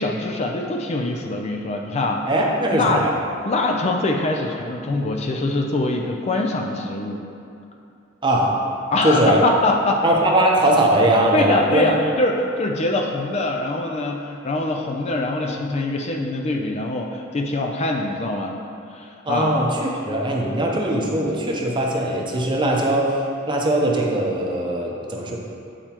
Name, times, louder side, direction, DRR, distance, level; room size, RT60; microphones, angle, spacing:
voice 1, 0.0-2.2 2.7-3.0 3.4-7.2 8.9-10.0 11.3-18.5 19.0-19.5, left 2 dB, 35° left, 1 dB, 0.4 m, -23 dB
voice 2, 2.3-3.1 8.2-8.5 9.0-9.4 10.0-11.9 19.2-23.2 23.5-25.4, right 1 dB, 25° right, -1 dB, 0.7 m, -20 dB
8.8 x 4.4 x 2.9 m, 2.6 s
head